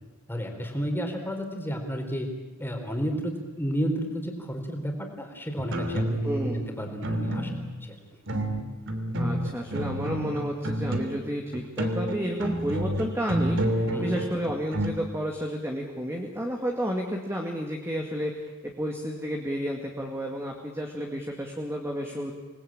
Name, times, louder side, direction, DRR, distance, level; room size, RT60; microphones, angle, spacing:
voice 1, 0.3-2.3 2.6-7.5 7.8-8.0 13.9-14.2, equal, 10° left, 3 dB, 3.9 m, -32 dB
sound 1, 5.6-6.7 7.0-7.9 8.3-11.3 11.5-14.9, right 1 dB, 60° right, 3.0 m, -29 dB
voice 2, 6.2-6.6 9.2-22.3, equal, 10° right, 1 dB, 2.2 m, -31 dB
27.5 x 20.0 x 8.8 m, 1.1 s
head